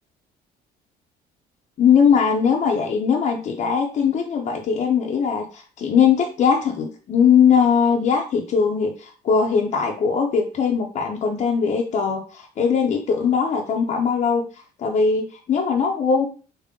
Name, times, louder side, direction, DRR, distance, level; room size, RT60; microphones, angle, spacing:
voice 1, 1.8-14.4 14.8-16.3, left 6 dB, 45° left, 1 dB, 0.6 m, -20 dB
3.6 x 2.1 x 3.6 m, 0.38 s
cardioid pair, 110°, 17 cm